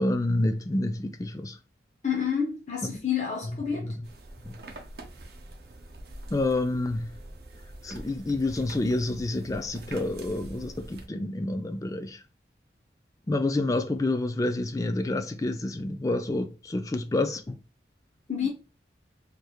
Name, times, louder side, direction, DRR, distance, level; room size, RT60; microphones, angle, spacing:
voice 1, 0.0-1.6 2.8-3.0 3.5-4.0 4.4-4.6 6.3-7.2 7.8-12.2 13.3-17.6, left 2 dB, 20° left, 0.3 m, -28 dB
voice 2, 2.0-3.9 18.3-18.5, left 7 dB, 40° left, 0.8 m, -29 dB
sound 1, 4.0-11.1, right 1 dB, 60° right, 0.7 m, -45 dB
3.5 x 3.2 x 2.3 m
head